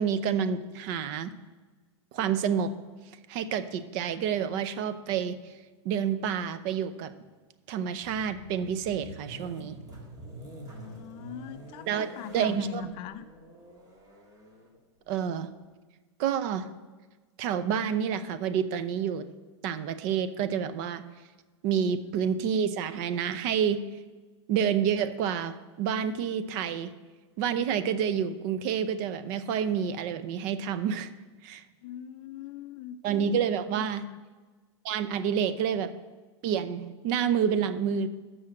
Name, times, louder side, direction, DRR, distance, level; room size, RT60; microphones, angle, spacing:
voice 1, 0.0-1.3 2.1-2.8 3.3-5.5 5.8-7.1 7.7-9.8 11.9-12.9 15.1-15.5 16.2-16.7 17.4-19.3 19.6-21.0 21.6-23.8 24.5-26.9 27.4-31.1 31.4-31.6 33.0-34.1 34.8-35.9 36.4-38.1, right 7 dB, 45° right, 12 dB, 0.6 m, -28 dB
sound 1, 8.0-15.8, right 1 dB, 25° right, 1.8 m, -47 dB
voice 2, 10.7-13.2 31.8-33.0 33.9-34.2, left 11 dB, 40° left, 12 dB, 0.5 m, -42 dB
7.3 x 6.3 x 7.7 m, 1.3 s
hypercardioid pair, 130°, 15 cm